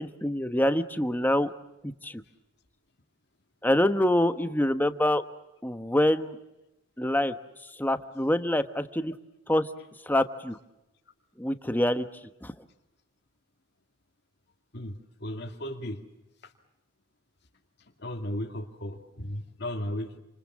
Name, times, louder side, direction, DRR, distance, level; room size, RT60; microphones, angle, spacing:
voice 1, 0.0-1.5 1.8-2.2 3.6-5.2 5.6-6.4 7.0-7.4 7.7-9.1 9.5-9.7 10.0-10.6 11.4-12.1 12.4-12.6, left 1 dB, 10° left, 9 dB, 1.1 m, -25 dB
voice 2, 14.7-16.0 16.4-16.5 18.0-20.2, left 1 dB, 55° left, 4 dB, 2.3 m, -35 dB
29.0 x 27.5 x 7.4 m, 0.94 s
head